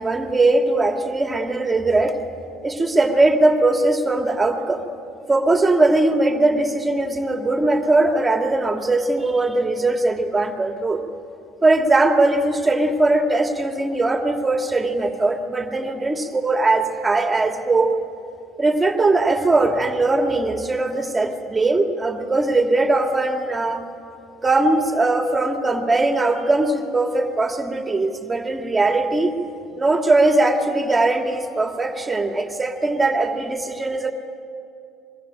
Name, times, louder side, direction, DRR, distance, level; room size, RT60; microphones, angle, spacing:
voice 1, 0.0-2.2 2.6-4.8 5.3-11.0 11.6-18.0 18.6-23.8 24.4-34.1, right 2 dB, 20° right, 4 dB, 2.6 m, -20 dB
25.5 x 22.5 x 9.0 m, 2.5 s
hypercardioid pair, 70°, 0 cm